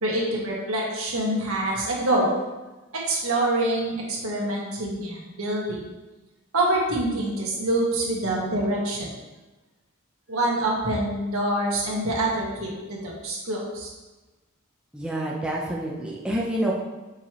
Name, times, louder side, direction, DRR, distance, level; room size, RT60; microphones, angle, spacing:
voice 1, 0.0-2.4 2.9-5.9 6.5-9.1 10.3-13.9, right 1 dB, 75° right, -3 dB, 1.5 m, -26 dB
voice 2, 14.9-16.7, right 1 dB, 5° right, -4 dB, 0.6 m, -28 dB
6.7 x 4.5 x 3.1 m, 1.1 s
head